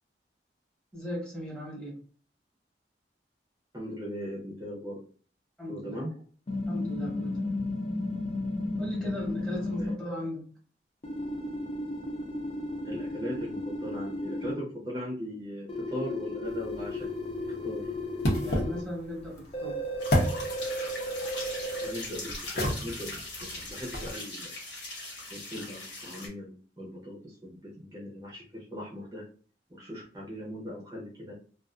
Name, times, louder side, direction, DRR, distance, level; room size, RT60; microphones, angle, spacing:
voice 1, 0.9-2.0 5.6-6.0 6.7-7.6 8.8-10.4 18.4-19.8, equal, 5° left, -4 dB, 1.0 m, -38 dB
voice 2, 3.7-5.0 5.7-6.1 9.0-9.9 12.8-17.1 17.4-17.9 21.8-24.6 25.3-29.2 29.7-31.3, equal, 20° right, -4 dB, 0.7 m, -39 dB
sound 1, 6.5-10.0 11.0-14.5 15.7-18.8 19.5-21.9, left 1 dB, 35° left, 0.4 m, -34 dB
sound 2, 16.4-24.1, left 1 dB, 70° left, 0.8 m, -34 dB
sound 3, 20.0-26.3, left 2 dB, 85° left, 1.3 m, -40 dB
2.4 x 2.4 x 2.4 m, 0.42 s
head